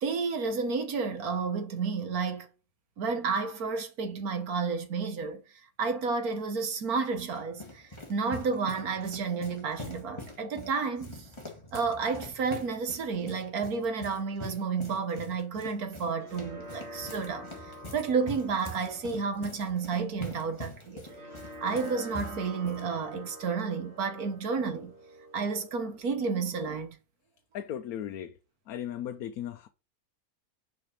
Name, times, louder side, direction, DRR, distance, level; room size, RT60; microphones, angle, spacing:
voice 1, 0.0-2.5 3.0-5.4 5.8-11.2 11.7-17.5 17.9-21.0 21.6-24.9 25.3-27.0, right 5 dB, 75° right, 1.8 m, -31 dB
sound 1, 6.7-22.8, left 1 dB, 20° left, 1.8 m, -44 dB
sound 2, 15.9-26.8, equal, 40° right, 3.3 m, -47 dB
voice 2, 27.5-28.4 28.7-29.7, left 10 dB, 80° left, 1.1 m, -36 dB
6.4 x 5.0 x 5.7 m
omnidirectional pair, 1.6 m